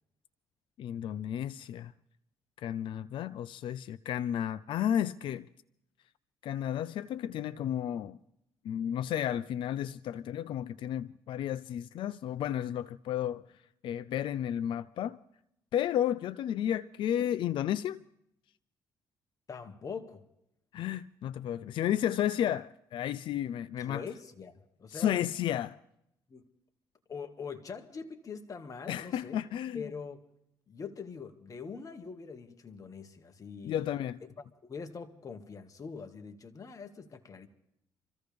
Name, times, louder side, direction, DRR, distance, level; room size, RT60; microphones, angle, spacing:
voice 1, 0.8-1.9 2.6-5.5 6.4-8.2 8.6-13.4 13.8-15.2 15.7-18.0 20.7-24.0 24.9-25.8 28.9-29.8 33.6-34.2, left 10 dB, 70° left, 0.5 m, -32 dB
voice 2, 19.5-20.2 23.8-25.2 26.3-26.4 27.1-29.4 29.7-30.2 30.7-33.9 34.6-37.5, left 5 dB, 40° left, 1.7 m, -43 dB
27.0 x 14.5 x 3.4 m
cardioid pair, 80°, 9 cm